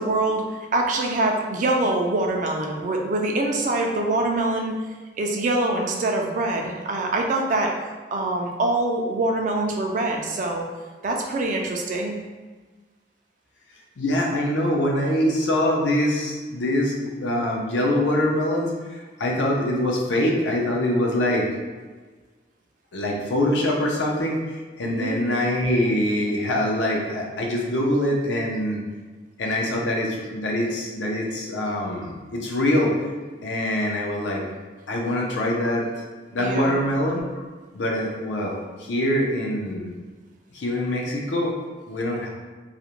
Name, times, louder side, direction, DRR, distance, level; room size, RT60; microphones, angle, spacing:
voice 1, 0.0-4.7 5.2-7.7 8.1-10.7 11.0-12.2 24.8-25.2 36.4-36.8, right 2 dB, 45° right, 1 dB, 0.3 m, -24 dB
voice 2, 14.0-21.5 22.9-28.8 29.4-32.9 33.4-34.4 34.9-35.9 36.3-37.3 37.7-39.9 40.5-41.6 41.9-42.3, left 1 dB, 85° left, -1 dB, 0.5 m, -24 dB
2.4 x 2.1 x 2.9 m, 1.4 s
head